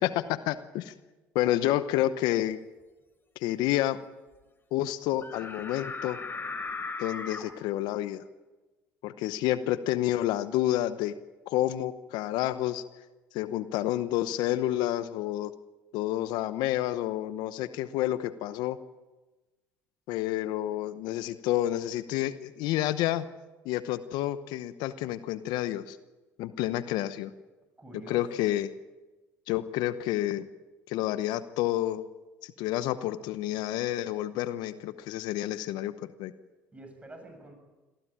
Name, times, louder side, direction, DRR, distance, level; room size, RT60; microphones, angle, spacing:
voice 1, 0.0-0.9 1.3-2.6 3.4-4.0 4.7-6.2 7.0-8.2 9.0-11.1 11.5-12.8 13.3-15.5 15.9-18.8 20.1-23.3 23.6-26.0 26.4-27.3 28.1-28.7 29.5-30.5 30.9-32.0 32.4-35.9 36.2-36.3, left 14 dB, 75° left, 14 dB, 0.9 m, -29 dB
sound 1, 5.2-7.4, left 4 dB, 30° left, 4.2 m, -37 dB
voice 2, 27.8-28.5 36.7-37.5, right 2 dB, 15° right, 5 dB, 7.2 m, -47 dB
23.0 x 15.0 x 8.8 m, 1.2 s
supercardioid pair, 75°, 7 cm